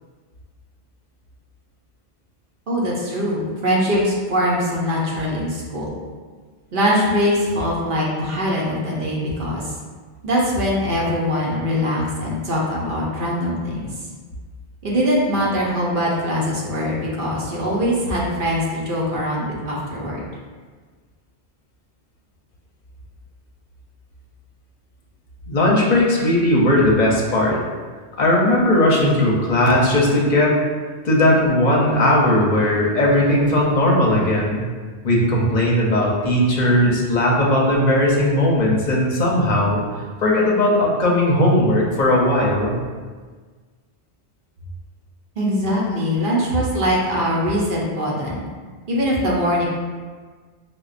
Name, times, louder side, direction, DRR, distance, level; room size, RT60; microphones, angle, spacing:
voice 1, 2.7-5.9 6.7-9.7 10.2-13.9 14.8-20.2 45.4-48.5 48.9-49.7, equal, 55° right, -4 dB, 0.9 m, -22 dB
voice 2, 25.5-27.6 28.2-30.6 31.0-34.6 35.0-39.8 40.2-42.7, left 1 dB, 50° left, -3 dB, 0.7 m, -17 dB
5.2 x 2.1 x 2.4 m, 1.5 s
omnidirectional pair, 1.1 m